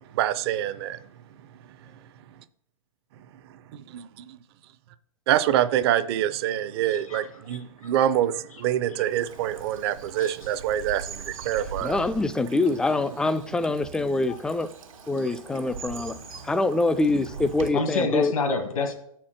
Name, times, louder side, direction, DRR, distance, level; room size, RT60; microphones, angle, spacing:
voice 1, 0.1-1.0 3.9-4.4 5.3-12.0, right 11 dB, 45° right, 0.5 m, -25 dB
voice 2, 6.9-7.9 8.5-8.6 9.0-9.1 10.2-10.5 17.7-18.9, left 4 dB, 75° left, 1.3 m, -29 dB
Bird vocalization bird call bird song / Stream, 9.1-17.7, right 5 dB, 75° right, 1.4 m, -42 dB
voice 3, 11.8-14.7 15.1-16.2 16.4-18.3, left 2 dB, 5° left, 0.3 m, -25 dB
7.0 x 4.4 x 6.5 m
hypercardioid pair, 115°, 18 cm